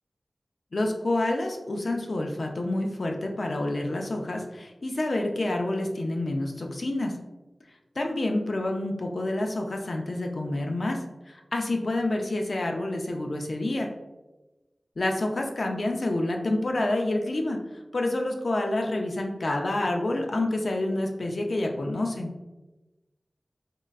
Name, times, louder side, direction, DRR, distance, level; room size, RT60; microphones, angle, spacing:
voice 1, 0.7-7.1 8.0-13.9 15.0-17.6 17.9-22.3, left 1 dB, 75° left, 2 dB, 0.5 m, -28 dB
3.7 x 3.1 x 2.3 m, 1.1 s
cardioid pair, 40°, 0 cm